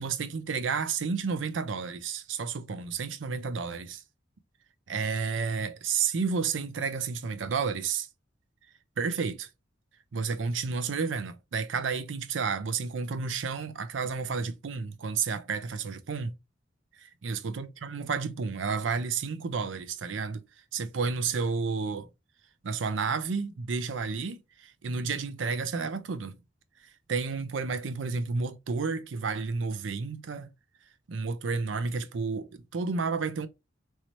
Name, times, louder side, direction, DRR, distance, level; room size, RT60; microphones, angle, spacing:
voice 1, 0.0-4.0 4.9-8.1 9.0-9.5 10.1-16.3 17.0-20.4 20.7-22.1 22.6-26.4 27.1-30.5 31.1-33.5, right 5 dB, 80° right, 0.5 m, -31 dB
3.1 x 2.7 x 3.0 m
head